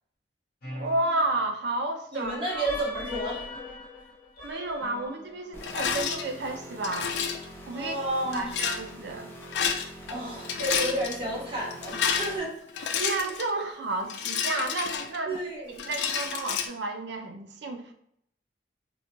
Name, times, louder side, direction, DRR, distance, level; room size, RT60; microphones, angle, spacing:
sound 1, 0.6-1.7 2.2-5.6, left 3 dB, 55° left, 0.8 m, -39 dB
voice 1, 0.7-2.8 4.4-7.1 7.7-7.9 8.2-9.3 13.0-15.4 15.7-17.9, right 2 dB, 70° right, 5 dB, 0.5 m, -31 dB
voice 2, 2.1-3.5 7.7-8.5 10.1-12.5 15.3-15.7, right 1 dB, 30° right, -5 dB, 1.1 m, -31 dB
sound 2, 5.5-12.4, equal, 15° left, 0.5 m, -45 dB
Rattle, 5.6-6.2 6.8-7.5 8.3-8.8 9.4-10.1 10.4-11.2 11.7-13.5 14.1-15.4 15.8-16.7, left 7 dB, 75° left, 0.4 m, -30 dB
3.6 x 2.1 x 3.0 m, 0.71 s
head